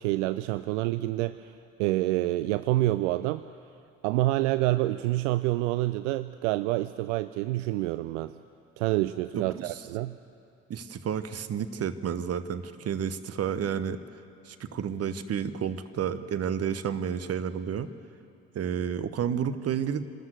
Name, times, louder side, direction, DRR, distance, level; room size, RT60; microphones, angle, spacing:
voice 1, 0.0-1.5 1.8-3.4 4.0-8.3 8.8-10.2, right 17 dB, 70° right, 13 dB, 0.6 m, -27 dB
voice 2, 9.3-9.7 10.7-14.0 14.5-17.9 18.5-20.0, right 8 dB, 40° right, 12 dB, 1.2 m, -31 dB
26.5 x 13.0 x 7.9 m, 2.5 s
figure-of-eight pair, 55°, 37 cm